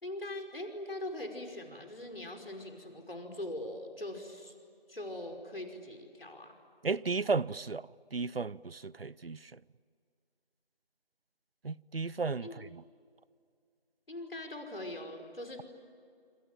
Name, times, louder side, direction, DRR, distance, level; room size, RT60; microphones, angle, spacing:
voice 1, 0.0-4.5 4.9-6.6 12.4-12.6 14.1-15.6, left 1 dB, 70° left, 5.3 m, -41 dB
voice 2, 6.8-9.6 11.6-12.8, right 4 dB, 80° right, 0.7 m, -34 dB
27.5 x 27.0 x 7.7 m
figure-of-eight pair, 170°, 29 cm